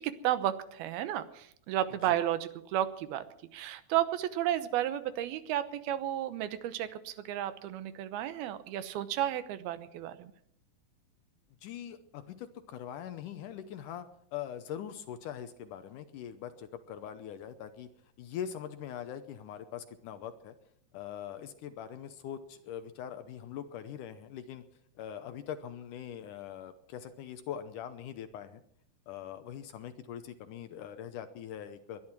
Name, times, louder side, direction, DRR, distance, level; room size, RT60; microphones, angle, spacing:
voice 1, 0.0-3.2 3.5-10.3, right 12 dB, 85° right, 12 dB, 2.9 m, -33 dB
voice 2, 11.6-17.9 18.2-20.5 20.9-24.6 25.0-28.6 29.1-32.0, left 9 dB, 70° left, 10 dB, 2.1 m, -42 dB
21.0 x 11.5 x 6.0 m, 0.69 s
omnidirectional pair, 4.3 m